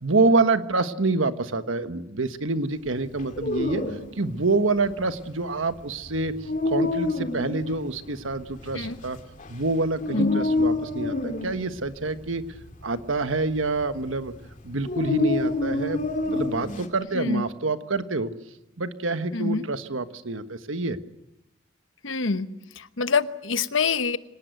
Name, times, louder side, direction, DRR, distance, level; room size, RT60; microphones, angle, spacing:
voice 1, 0.0-3.8 4.2-6.3 6.6-9.2 9.5-12.4 12.8-14.3 14.6-18.3 18.8-21.0, right 3 dB, 75° right, 10 dB, 1.4 m, -26 dB
Dog, 3.1-16.9, left 2 dB, 40° left, 2.6 m, -29 dB
voice 2, 10.1-10.4 17.1-17.4 19.3-19.6 22.0-22.5 22.8-24.2, left 4 dB, 70° left, 12 dB, 1.1 m, -25 dB
25.0 x 18.5 x 9.3 m, 0.87 s
head